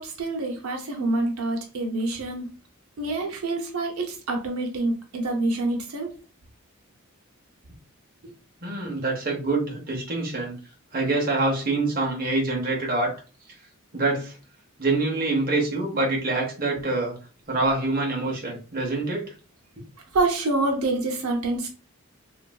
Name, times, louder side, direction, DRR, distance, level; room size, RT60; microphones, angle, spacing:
voice 1, 0.0-2.5 3.0-6.1 20.1-21.7, right 2 dB, 85° right, 0.6 m, -26 dB
voice 2, 8.6-10.6 10.9-13.1 13.9-14.3 14.8-17.1 17.5-19.3, right 2 dB, 40° right, 0.8 m, -25 dB
3.0 x 2.5 x 2.2 m
head